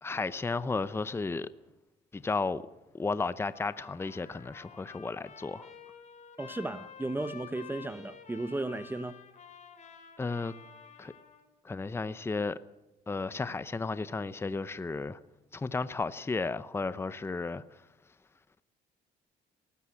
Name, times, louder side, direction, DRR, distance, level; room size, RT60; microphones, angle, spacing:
voice 1, 0.0-1.5 2.1-2.6 2.9-5.7 10.2-10.5 11.0-11.1 11.6-12.6 13.1-15.2 15.5-17.6, left 3 dB, 15° left, 0.7 m, -33 dB
Trumpet, 3.5-11.5, left 6 dB, 45° left, 3.8 m, -51 dB
voice 2, 6.4-9.2, right 2 dB, 10° right, 0.9 m, -35 dB
18.5 x 16.0 x 9.7 m
cardioid pair, 110°, 17 cm